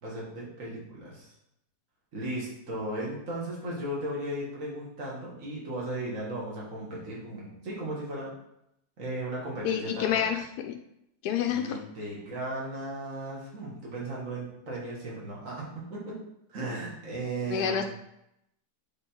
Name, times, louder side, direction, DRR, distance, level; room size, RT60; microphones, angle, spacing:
voice 1, 0.0-1.3 2.1-8.3 9.0-10.2 11.4-15.6 15.9-16.2 16.5-17.8, right 1 dB, 50° right, -5 dB, 2.1 m, -36 dB
voice 2, 9.6-10.8 11.2-11.8 17.5-17.8, left 9 dB, 75° left, 4 dB, 1.1 m, -28 dB
7.7 x 3.9 x 4.5 m, 0.80 s
omnidirectional pair, 1.7 m